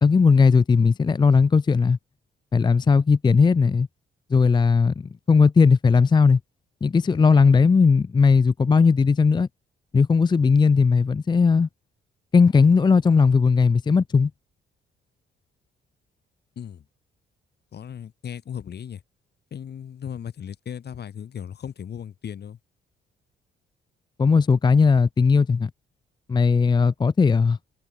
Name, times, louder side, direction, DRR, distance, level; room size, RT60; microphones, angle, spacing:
voice 1, 0.0-2.0 2.5-3.9 4.3-6.4 6.8-9.5 9.9-11.7 12.3-14.3 24.2-25.7 26.3-27.6, left 5 dB, 20° left, 0.5 m, -18 dB
voice 2, 17.7-19.0 19.5-22.6, left 8 dB, 55° left, 4.5 m, -36 dB
cardioid pair, 90°, 20 cm